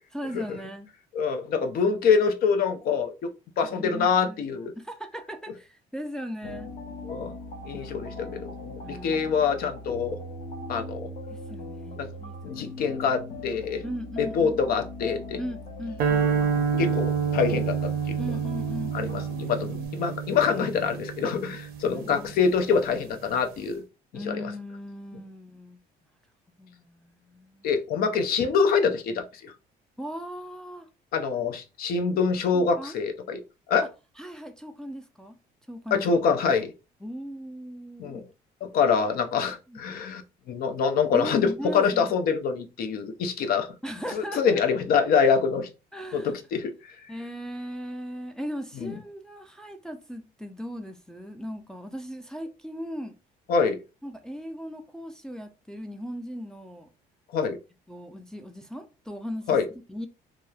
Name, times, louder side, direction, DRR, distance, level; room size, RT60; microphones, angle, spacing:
voice 1, 0.1-0.9 3.7-4.4 4.8-6.7 7.7-7.9 8.2-8.5 8.8-9.5 11.3-12.4 13.8-14.6 15.4-16.5 18.2-19.4 21.9-22.5 24.1-25.8 26.6-27.7 30.0-30.9 32.5-33.0 34.2-35.4 35.7-36.1 37.0-38.3 39.7-39.8 41.1-42.2 43.8-44.6 45.9-46.3 47.1-53.1 54.0-56.9 57.9-60.1, equal, 5° left, 0.3 m, -38 dB
voice 2, 1.1-3.3 3.6-4.7 7.1-7.3 7.6-10.2 10.7-11.1 12.0-12.1 12.4-13.8 14.2-15.4 16.6-18.2 18.9-23.8 24.3-24.5 27.6-29.5 31.1-33.4 33.7-33.9 35.9-36.7 38.0-38.2 38.6-40.2 40.5-43.7 44.1-45.7 46.1-46.7 48.8-48.9 53.5-53.8 57.3-57.6 59.5-59.7, left 6 dB, 60° left, 0.5 m, -25 dB
sound 1, 6.4-19.9, left 1 dB, 45° left, 0.9 m, -39 dB
sound 2, 16.0-22.3, right 7 dB, 65° right, 0.5 m, -28 dB
2.9 x 2.0 x 2.2 m
cardioid pair, 110°, 17 cm